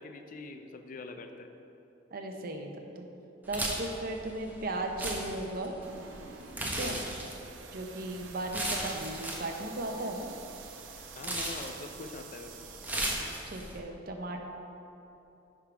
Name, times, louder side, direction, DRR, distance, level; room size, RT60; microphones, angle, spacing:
voice 1, 0.0-1.5 6.8-7.1 11.2-12.5, left 3 dB, 45° left, 7 dB, 0.4 m, -43 dB
voice 2, 2.1-3.1 3.5-5.7 6.7-7.0 7.7-10.3 13.5-14.4, right 2 dB, 50° right, 3 dB, 0.7 m, -36 dB
sound 1, 3.5-13.8, right 1 dB, 10° right, 0.8 m, -38 dB
sound 2, 5.8-13.5, right 6 dB, 90° right, 0.5 m, -49 dB
10.5 x 3.7 x 4.9 m, 2.9 s
head